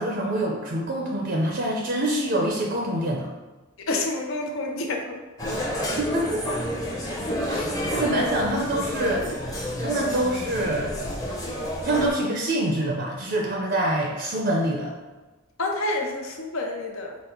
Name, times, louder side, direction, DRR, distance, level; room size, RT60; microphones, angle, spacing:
voice 1, 0.0-3.3 6.0-6.6 7.4-10.9 11.8-14.9, right 1 dB, 50° right, -1 dB, 0.5 m, -26 dB
voice 2, 3.9-5.2 7.5-7.7 15.6-17.2, left 2 dB, 70° left, 2 dB, 0.6 m, -28 dB
sound 1, 5.4-12.1, equal, 15° left, 0.7 m, -29 dB
5.2 x 2.0 x 4.4 m, 1.2 s
head